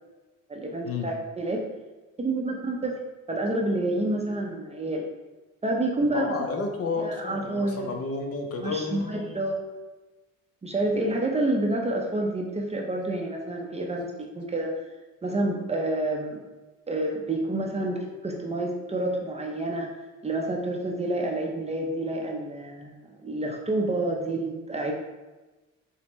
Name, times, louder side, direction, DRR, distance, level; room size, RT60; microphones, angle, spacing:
voice 1, 0.5-1.6 2.2-3.0 3.3-5.1 5.6-6.3 7.0-7.9 8.6-9.6 10.6-14.8 15.2-16.4 16.9-20.0 20.2-24.9, right 2 dB, 20° right, 0 dB, 0.5 m, -28 dB
voice 2, 6.1-9.4, left 4 dB, 50° left, 4 dB, 0.7 m, -31 dB
5.1 x 2.1 x 3.0 m, 1.1 s
cardioid pair, 90°, 30 cm